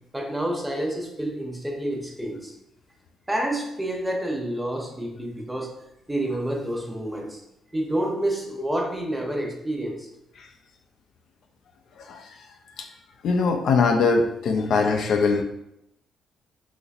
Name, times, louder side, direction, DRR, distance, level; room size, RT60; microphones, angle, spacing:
voice 1, 0.1-2.5 3.3-5.7 6.1-7.4 7.7-10.1, right 1 dB, 5° right, 0 dB, 0.7 m, -28 dB
voice 2, 12.0-12.4 12.8-12.9 13.2-15.4, left 4 dB, 70° left, 4 dB, 0.4 m, -22 dB
4.1 x 2.8 x 2.4 m, 0.81 s
cardioid pair, 90°, 0 cm